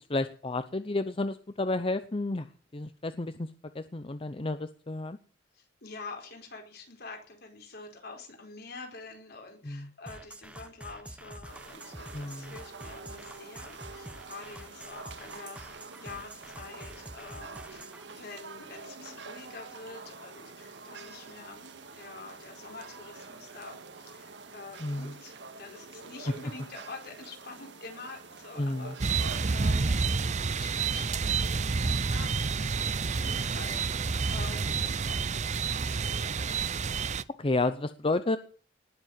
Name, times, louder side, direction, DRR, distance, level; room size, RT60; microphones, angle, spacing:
voice 1, 0.1-2.5 2.7-3.5 3.7-5.2 9.6-9.9 12.1-12.5 24.8-25.1 28.6-28.9 37.4-38.4, left 2 dB, 30° left, 11 dB, 0.7 m, -31 dB
voice 2, 5.5-21.6 21.9-35.2 35.4-36.6, left 3 dB, 60° left, 2 dB, 4.6 m, -47 dB
sound 1, 10.1-18.0, right 1 dB, 5° right, 1.0 m, -47 dB
sound 2, 11.5-29.5, right 4 dB, 70° right, 1.8 m, -47 dB
sound 3, 29.0-37.2, right 4 dB, 40° right, 0.6 m, -29 dB
19.0 x 7.5 x 7.5 m, 0.44 s
head